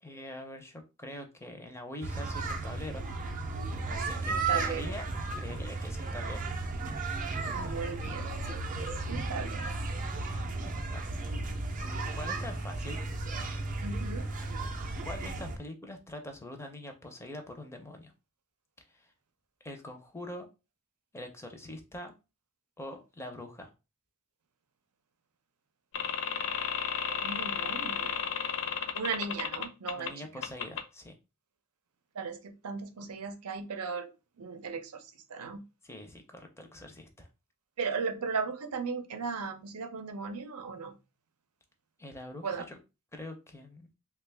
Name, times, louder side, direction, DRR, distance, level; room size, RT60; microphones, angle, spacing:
voice 1, 0.0-3.1 3.9-6.5 10.1-10.4 10.6-11.0 11.3-13.0 15.0-18.1 18.9-19.1 19.6-20.5 21.1-22.1 22.8-23.7 29.9-31.1 35.8-37.3 42.0-42.8 43.1-43.9, left 1 dB, 10° left, 5 dB, 0.5 m, -44 dB
sound 1, 2.0-15.6, right 3 dB, 35° right, 0.5 m, -34 dB
voice 2, 4.3-4.8 7.5-9.7 13.8-14.3 27.0-28.3 29.0-30.1 32.1-34.1 34.4-35.6 37.8-40.9 42.4-42.6, right 5 dB, 85° right, 8 dB, 0.6 m, -37 dB
sound 2, 25.9-30.1 30.4-30.8, left 7 dB, 60° left, 0.5 m, -33 dB
3.1 x 2.3 x 3.3 m, 0.28 s
head